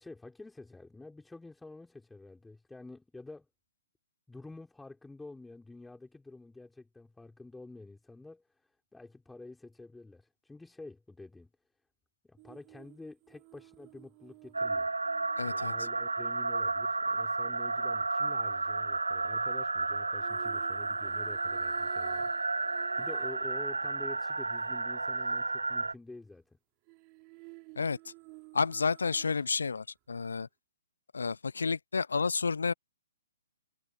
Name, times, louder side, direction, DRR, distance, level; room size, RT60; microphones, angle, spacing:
voice 1, 0.0-3.5 4.3-11.5 12.2-14.9 15.4-22.3 22.6-26.6, left 2 dB, 5° left, 4.7 m, -49 dB
sound 1, 12.4-16.6 20.2-23.6 23.9-24.0 26.9-29.8 30.1-30.2, right 34 dB, 30° right, 4.5 m, -53 dB
sound 2, 14.5-25.9, right 3 dB, 85° right, 0.4 m, -32 dB
voice 2, 15.4-15.7 27.8-28.0 28.5-30.5 31.1-32.7, left 5 dB, 75° left, 0.7 m, -30 dB
figure-of-eight pair, 130°, 0 cm